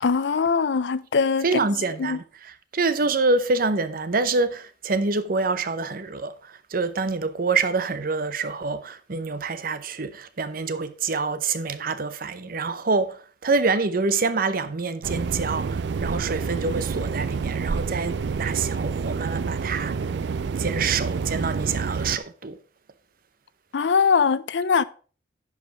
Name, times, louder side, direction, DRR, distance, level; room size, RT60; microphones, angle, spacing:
voice 1, 0.0-1.4 2.0-2.2 23.7-24.8, left 5 dB, 80° left, 0.5 m, -21 dB
voice 2, 1.4-20.1 20.6-22.6, right 4 dB, 55° right, 0.8 m, -26 dB
sound 1, 15.0-22.2, right 5 dB, 70° right, 0.4 m, -28 dB
10.5 x 5.1 x 4.9 m
head